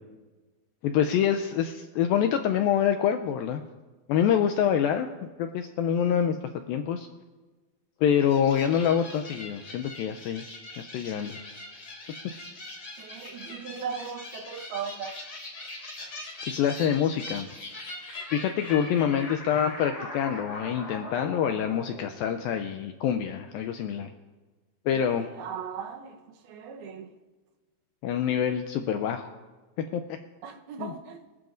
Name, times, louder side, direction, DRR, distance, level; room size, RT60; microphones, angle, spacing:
voice 1, 0.8-3.6 4.1-5.1 5.4-6.4 6.7-7.1 8.0-10.4 10.8-11.4 16.4-17.5 18.3-24.1 24.9-25.3 28.0-29.3 29.9-30.0 30.8-30.9, left 8 dB, 85° left, 6 dB, 2.1 m, -26 dB
sound 1, 8.2-22.8, left 2 dB, 35° left, 1.6 m, -41 dB
voice 2, 13.0-15.2 24.9-27.1 30.4-31.2, right 7 dB, 75° right, 4 dB, 2.9 m, -38 dB
24.0 x 15.0 x 2.6 m, 1.3 s
omnidirectional pair, 4.7 m